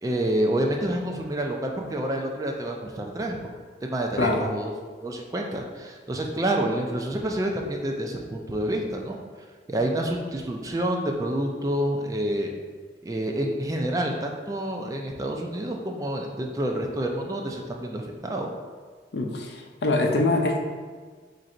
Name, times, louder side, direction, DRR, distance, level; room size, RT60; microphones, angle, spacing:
voice 1, 0.0-3.4 3.8-4.7 5.0-9.2 9.7-12.5 13.0-18.5, right 1 dB, 20° right, 1 dB, 0.3 m, -28 dB
voice 2, 19.1-20.6, left 2 dB, 75° left, 1 dB, 0.5 m, -24 dB
3.7 x 2.6 x 4.2 m, 1.5 s
head